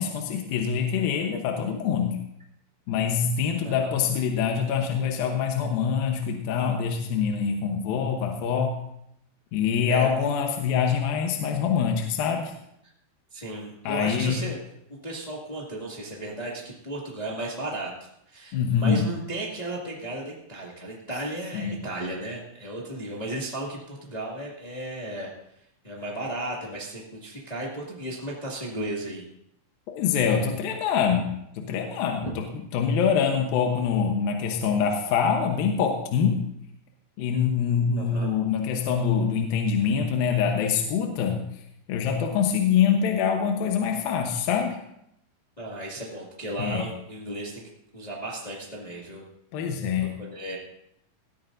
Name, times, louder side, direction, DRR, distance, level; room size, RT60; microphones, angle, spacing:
voice 1, 0.0-2.2 2.9-8.8 9.5-12.5 13.9-14.4 18.5-19.1 21.5-21.8 29.9-31.3 31.6-32.4 32.7-36.4 37.2-41.4 41.9-44.8 46.6-46.9 49.5-50.1, left 7 dB, 70° left, 3 dB, 2.6 m, -25 dB
voice 2, 13.3-14.6 14.9-17.9 18.3-25.3 25.8-29.2 32.2-32.3 38.0-38.3 45.6-47.6 47.9-49.2 50.0-50.6, right 1 dB, 30° left, -4 dB, 0.7 m, -35 dB
18.5 x 13.5 x 2.6 m, 0.77 s
omnidirectional pair, 4.6 m